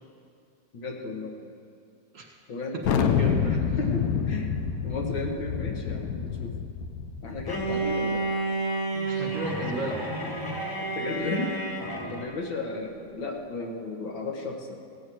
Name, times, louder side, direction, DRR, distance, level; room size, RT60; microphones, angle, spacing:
voice 1, 0.7-1.6 2.5-3.3 3.8-4.6 4.8-6.5 7.2-8.4 10.8-11.5 12.1-14.8, left 2 dB, 90° left, 1 dB, 2.2 m, -34 dB
Thunder, 2.8-8.0, left 7 dB, 65° left, 1.0 m, -27 dB
voice 2, 3.0-3.6 8.9-10.1 12.0-12.2, right 2 dB, 45° right, 0 dB, 1.8 m, -34 dB
Bowed string instrument, 7.5-12.3, right 2 dB, 20° left, 0.6 m, -30 dB
16.5 x 6.2 x 8.4 m, 2.2 s
omnidirectional pair, 2.1 m